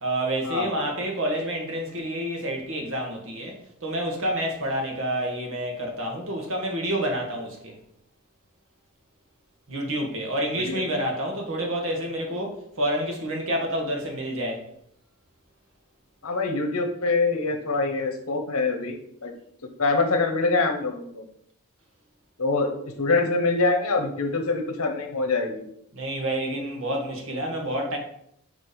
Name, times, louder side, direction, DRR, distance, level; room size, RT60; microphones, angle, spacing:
voice 1, 0.0-7.8 9.7-14.6 25.9-28.0, right 1 dB, 60° right, 1.6 m, -28 dB
voice 2, 16.2-18.9 19.2-19.3 19.8-21.2 22.4-22.7 23.0-25.6, left 3 dB, 70° left, 1.1 m, -24 dB
6.7 x 3.5 x 5.2 m
head